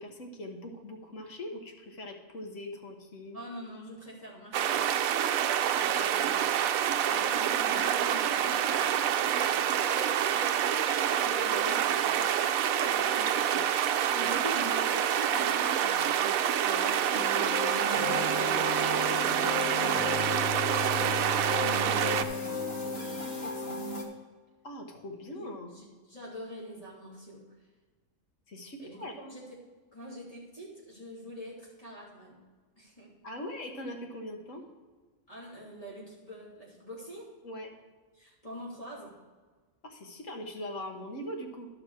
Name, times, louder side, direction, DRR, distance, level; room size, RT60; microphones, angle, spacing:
voice 1, 0.0-3.4 5.9-6.1 7.1-7.2 11.3-12.3 12.7-20.6 24.6-25.7 28.5-29.1 33.2-34.6 37.4-37.7 39.8-41.7, left 1 dB, 65° left, 2 dB, 1.7 m, -41 dB
voice 2, 3.3-4.8 5.7-6.4 6.9-10.5 21.6-23.8 25.4-27.7 28.8-29.6 29.9-32.4 32.8-33.1 35.3-37.3 38.1-39.1, equal, 25° left, -6 dB, 2.8 m, -45 dB
sound 1, 4.5-22.2, right 9 dB, 90° right, 1.0 m, -27 dB
sound 2, 17.1-24.0, left 3 dB, 50° left, 1.4 m, -34 dB
12.0 x 6.0 x 4.8 m, 1.4 s
omnidirectional pair, 1.4 m